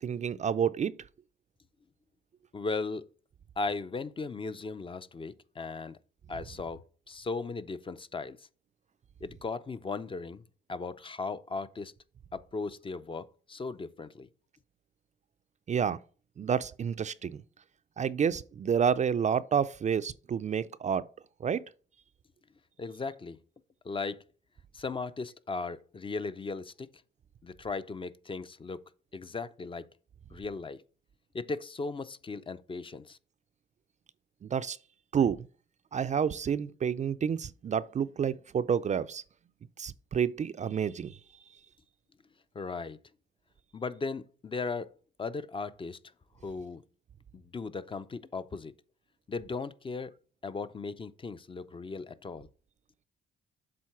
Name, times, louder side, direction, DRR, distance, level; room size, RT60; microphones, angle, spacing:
voice 1, 0.0-0.9 15.7-16.0 16.4-17.4 18.0-21.1 21.4-21.6 34.4-34.8 35.1-35.5 35.9-39.2 39.8-41.2, right 7 dB, 35° right, 0.4 m, -29 dB
voice 2, 2.5-3.0 3.6-6.0 6.3-8.4 9.2-10.4 10.7-11.9 12.3-14.3 22.8-23.4 23.8-24.2 24.7-26.9 27.4-28.8 29.1-29.9 30.3-30.8 31.3-33.2 42.5-43.0 43.7-44.9 45.2-46.0 46.4-46.8 47.3-48.7 49.3-50.1 50.4-52.5, left 4 dB, 25° left, 0.5 m, -37 dB
7.6 x 3.7 x 5.8 m
cardioid pair, 90°, 20 cm